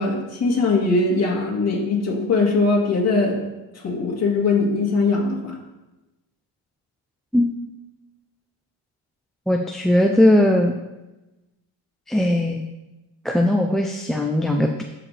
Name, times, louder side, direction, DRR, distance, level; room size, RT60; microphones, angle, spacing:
voice 1, 0.0-3.4 3.7-5.6, left 3 dB, 35° left, -2 dB, 2.2 m, -21 dB
voice 2, 9.5-10.7 12.1-12.6 13.2-14.8, left 1 dB, ahead, 2 dB, 0.3 m, -19 dB
14.5 x 5.0 x 3.3 m, 1.0 s
cardioid pair, 120°, 47 cm